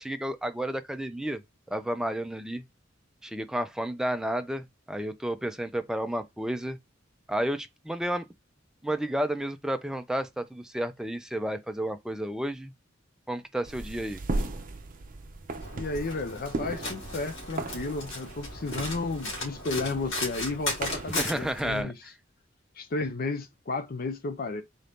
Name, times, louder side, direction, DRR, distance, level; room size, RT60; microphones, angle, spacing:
voice 1, 0.0-1.4 1.7-2.6 3.2-6.8 7.3-8.3 8.8-12.7 13.3-14.2 21.1-21.9, right 1 dB, 5° right, 0.4 m, -31 dB
sound 1, 13.6-21.8, right 2 dB, 45° right, 0.6 m, -37 dB
Domestic sounds home sounds, 15.6-21.6, left 2 dB, 80° left, 2.1 m, -36 dB
voice 2, 15.7-22.0 22.8-24.6, left 3 dB, 50° left, 0.5 m, -33 dB
3.8 x 2.7 x 3.4 m
head